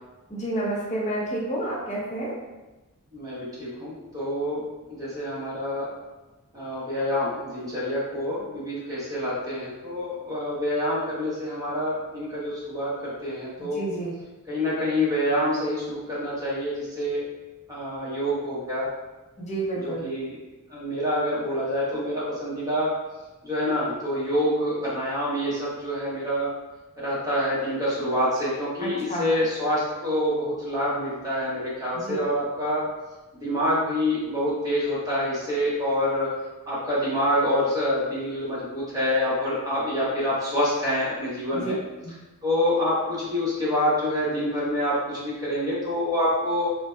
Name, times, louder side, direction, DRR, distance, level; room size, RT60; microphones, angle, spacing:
voice 1, 0.3-2.4 13.6-14.1 19.4-20.0 28.8-29.3 31.9-32.2 41.5-41.7 42.0-42.1, right 2 dB, 30° left, -3 dB, 0.5 m, -30 dB
voice 2, 3.1-5.9 6.5-13.8 14.5-17.2 17.7-18.9 19.8-20.4 20.7-23.0 23.4-26.5 27.0-32.8 33.3-36.3 36.7-41.8 42.4-46.8, left 1 dB, 15° right, -8 dB, 0.8 m, -26 dB
2.6 x 2.1 x 2.2 m, 1.1 s
head